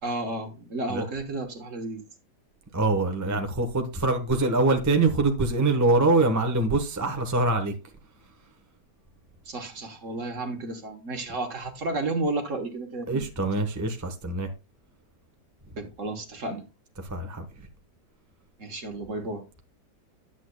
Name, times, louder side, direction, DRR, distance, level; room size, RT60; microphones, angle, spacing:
voice 1, 0.0-2.0 9.5-13.3 13.6-13.7 15.8-16.6 18.6-19.4, right 2 dB, 50° right, 1.4 m, -32 dB
voice 2, 2.7-7.7 13.1-14.5 17.0-17.4, right 2 dB, 15° right, 0.7 m, -24 dB
11.0 x 8.1 x 2.2 m
omnidirectional pair, 1.8 m